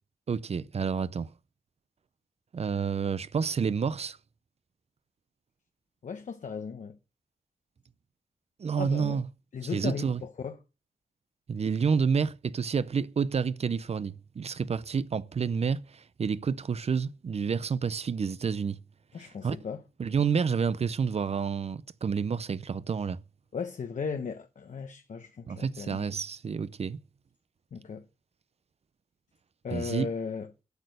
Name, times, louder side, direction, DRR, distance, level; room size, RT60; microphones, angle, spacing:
voice 1, 0.3-1.3 2.5-4.2 8.6-9.3 9.7-10.2 11.5-18.8 19.2-19.6 20.0-23.2 25.5-27.0 29.7-30.1, right 6 dB, 45° right, 0.5 m, -29 dB
voice 2, 6.0-7.0 8.8-9.2 9.5-10.6 19.1-19.8 23.5-26.2 27.7-28.0 29.6-30.5, left 5 dB, 60° left, 0.8 m, -36 dB
8.1 x 6.5 x 6.6 m
wide cardioid pair, 100°, 15 cm